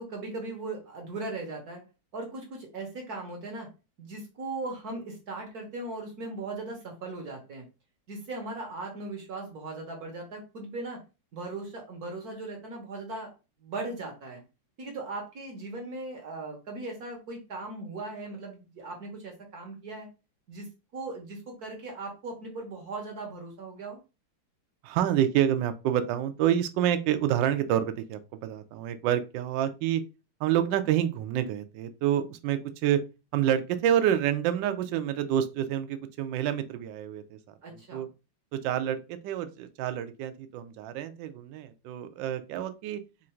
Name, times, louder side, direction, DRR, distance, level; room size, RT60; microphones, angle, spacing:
voice 1, 0.0-1.8 2.1-3.7 4.0-7.7 8.1-11.0 11.3-13.3 13.6-14.4 14.8-20.1 20.5-24.0 37.6-38.0, right 2 dB, 55° right, 1 dB, 1.3 m, -38 dB
voice 2, 24.8-30.0 30.4-33.0 33.3-38.1 38.5-43.0, right 10 dB, 75° right, 9 dB, 1.1 m, -28 dB
3.8 x 2.5 x 4.3 m, 0.30 s
omnidirectional pair, 2.4 m